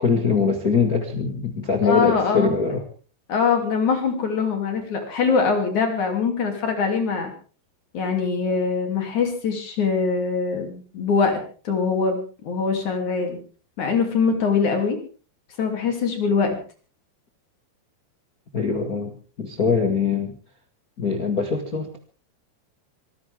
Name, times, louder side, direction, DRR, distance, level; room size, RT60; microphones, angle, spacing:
voice 1, 0.0-2.8 18.5-19.1 19.4-20.3 21.0-22.0, left 5 dB, 65° left, 3 dB, 0.8 m, -22 dB
voice 2, 1.8-2.6 3.3-7.3 7.9-13.4 13.8-15.0 15.6-16.6, left 5 dB, 45° left, 4 dB, 3.9 m, -23 dB
25.5 x 14.5 x 3.5 m, 0.38 s
omnidirectional pair, 5.0 m